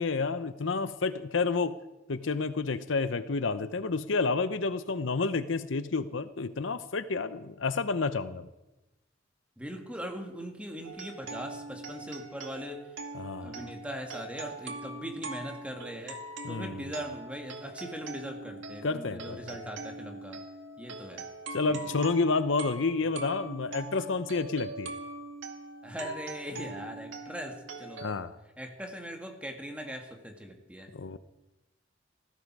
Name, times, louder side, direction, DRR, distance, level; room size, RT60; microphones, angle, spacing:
voice 1, 0.0-1.8 2.1-8.5 13.1-13.6 16.4-16.9 18.8-19.6 21.5-24.9 28.0-28.3 30.9-31.2, left 4 dB, 70° left, 13 dB, 0.8 m, -30 dB
voice 2, 9.6-12.8 13.4-16.2 16.5-20.4 20.8-21.3 21.6-21.9 25.8-28.1 28.6-30.9, equal, 5° right, 3 dB, 2.2 m, -40 dB
sound 1, 10.8-28.1, right 2 dB, 65° right, 2.0 m, -42 dB
18.5 x 15.5 x 4.8 m, 1.0 s
head